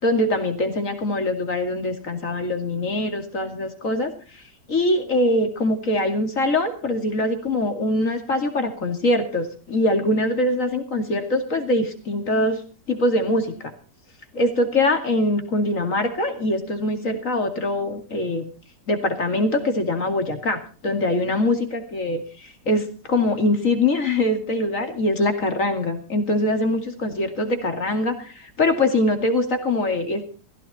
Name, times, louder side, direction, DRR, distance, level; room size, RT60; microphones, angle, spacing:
voice 1, 0.0-4.1 4.7-12.6 12.9-13.7 14.3-18.5 18.9-30.2, left 1 dB, 50° left, 6 dB, 2.8 m, -23 dB
16.0 x 15.5 x 4.3 m, 0.38 s
omnidirectional pair, 1.8 m